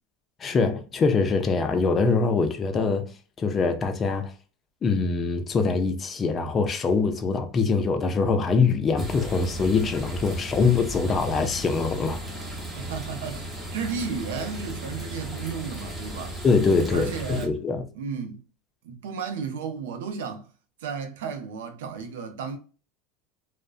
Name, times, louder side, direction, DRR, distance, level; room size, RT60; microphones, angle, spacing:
voice 1, 0.4-3.1 3.4-4.3 4.8-12.2 16.4-17.8, left 4 dB, 30° left, 0.5 m, -23 dB
sound 1, 9.0-17.5, right 1 dB, 10° right, 0.9 m, -35 dB
voice 2, 12.7-16.4 16.9-17.5 17.9-18.4 18.8-20.5 20.8-22.6, right 6 dB, 85° right, 0.6 m, -33 dB
2.5 x 2.1 x 2.4 m
supercardioid pair, 115°, 0 cm